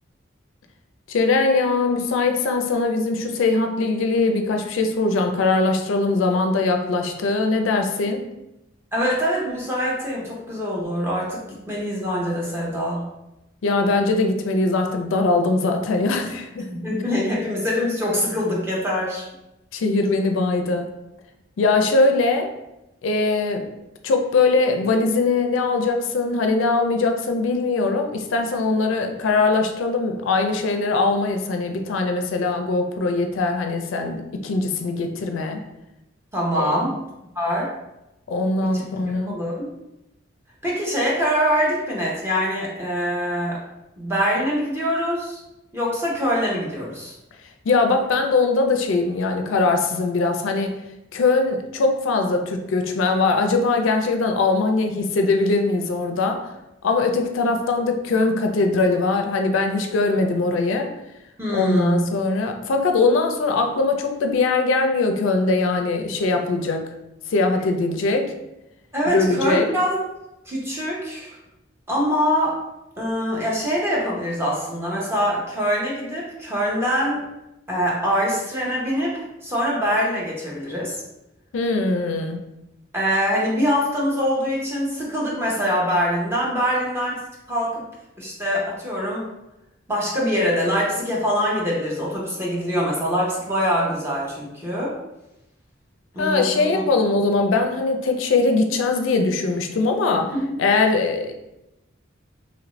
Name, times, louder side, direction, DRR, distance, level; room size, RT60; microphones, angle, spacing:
voice 1, 1.1-8.2 13.6-16.7 19.7-20.9 21.6-22.5 23.0-23.7 24.0-35.6 36.5-36.9 38.3-39.4 47.6-50.8 51.1-56.4 56.8-60.9 61.5-66.9 67.3-68.3 69.1-69.7 81.5-82.4 96.2-100.3 100.6-101.3, left 3 dB, 80° left, 5 dB, 0.4 m, -21 dB
voice 2, 8.9-11.4 11.7-13.0 16.7-19.2 36.3-36.9 37.3-37.7 38.7-39.7 40.6-43.6 44.0-45.4 45.7-47.1 61.4-62.0 68.9-70.0 70.5-71.4 71.9-72.6 73.0-77.2 77.7-81.0 82.9-87.2 87.5-87.8 88.2-89.3 89.9-94.9 96.1-96.8 100.3-100.4, equal, 15° right, -5 dB, 0.7 m, -24 dB
3.0 x 2.5 x 3.1 m, 0.91 s
head